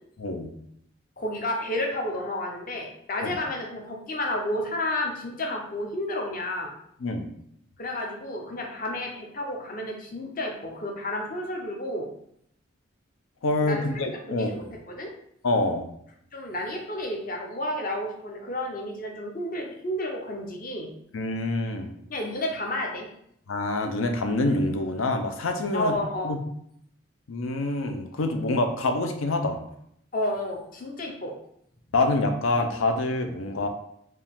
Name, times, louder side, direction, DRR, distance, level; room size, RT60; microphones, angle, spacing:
voice 1, 0.2-0.5 3.2-3.4 7.0-7.3 13.4-14.6 15.4-15.9 21.1-21.9 23.5-25.9 26.2-26.4 27.3-29.6 31.9-33.7, left 2 dB, 85° left, 5 dB, 0.6 m, -26 dB
voice 2, 1.2-6.7 7.8-12.1 13.6-15.1 16.3-20.9 22.1-23.1 25.7-26.3 30.1-31.3, left 1 dB, 40° left, 1 dB, 0.7 m, -31 dB
4.7 x 2.4 x 3.5 m, 0.71 s
head